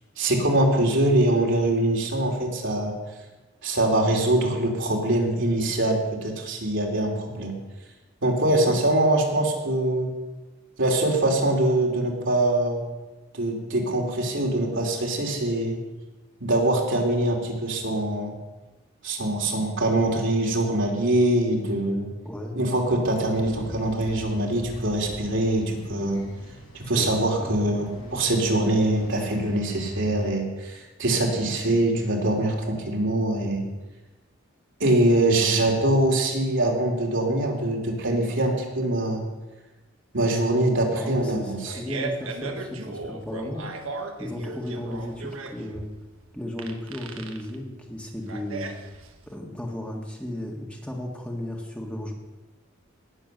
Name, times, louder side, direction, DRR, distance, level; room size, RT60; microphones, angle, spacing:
voice 1, 0.2-2.9 3.6-7.6 8.2-10.1 10.8-12.8 13.3-15.8 16.4-18.3 19.0-22.1 22.6-26.2 26.7-33.7 34.8-39.2 40.1-41.7, right 1 dB, 65° right, 0 dB, 2.8 m, -23 dB
voice 2, 22.3-22.6 26.9-27.7 35.7-35.8 40.9-43.9 44.2-45.9 46.3-48.7 49.3-52.1, left 1 dB, 5° left, 0 dB, 1.8 m, -34 dB
sound 1, 23.2-30.3, equal, 90° left, 5.4 m, -41 dB
Fart, 41.4-49.3, right 3 dB, 90° right, 1.5 m, -36 dB
18.0 x 7.0 x 6.7 m, 1.1 s
head